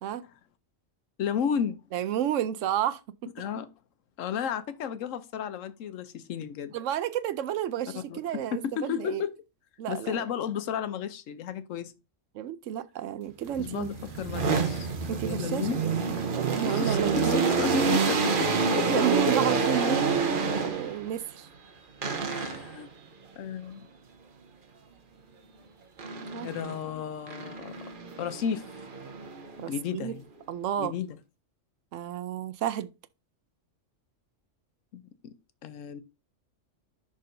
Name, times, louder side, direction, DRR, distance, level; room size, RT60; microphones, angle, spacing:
voice 1, 1.2-1.8 3.4-3.7 4.2-6.7 8.1-9.3 9.9-11.9 13.6-15.8 16.7-18.5 18.8-18.9 22.3-22.9 23.4-23.9 26.4-27.7 28.2-28.7 29.7-30.2 30.8-31.2 34.9-35.3 35.6-36.0, left 8 dB, 90° left, 1.1 m, -33 dB
voice 2, 1.9-3.0 6.7-9.2 9.8-10.2 12.3-13.9 15.1-15.8 16.4-17.5 18.9-21.5 26.3-26.5 29.6-30.1 30.5-30.9 31.9-32.9, right 10 dB, 80° right, 1.0 m, -31 dB
sound 1, 13.5-21.1 22.0-22.8 26.0-26.8 27.3-29.6, right 4 dB, 45° right, 0.9 m, -28 dB
10.5 x 3.7 x 2.6 m
omnidirectional pair, 1.3 m